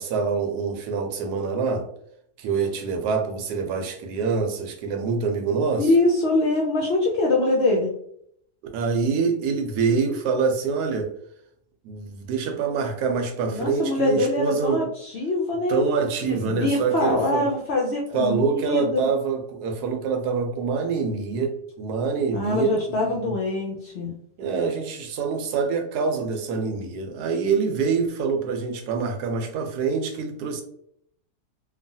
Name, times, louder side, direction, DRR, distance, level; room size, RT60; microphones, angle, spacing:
voice 1, 0.0-1.9 2.4-5.9 8.7-11.1 11.8-14.8 15.7-17.4 18.1-23.3 24.4-30.6, right 5 dB, 85° right, 4 dB, 1.1 m, -25 dB
voice 2, 5.8-7.9 13.5-15.8 16.2-19.1 22.3-24.1, left 2 dB, 75° left, -2 dB, 0.6 m, -24 dB
3.0 x 2.3 x 2.6 m, 0.69 s
omnidirectional pair, 1.7 m